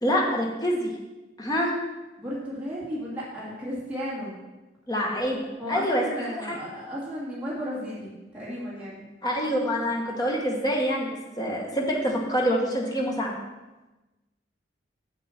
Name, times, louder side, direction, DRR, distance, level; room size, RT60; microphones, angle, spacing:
voice 1, 0.0-0.9 1.4-1.7 4.9-6.0 6.3-6.6 9.2-13.4, equal, 20° left, -1 dB, 1.6 m, -26 dB
voice 2, 2.2-4.4 5.6-9.1 11.7-11.8, equal, 5° right, -8 dB, 2.6 m, -34 dB
7.8 x 7.4 x 6.0 m, 1.1 s
head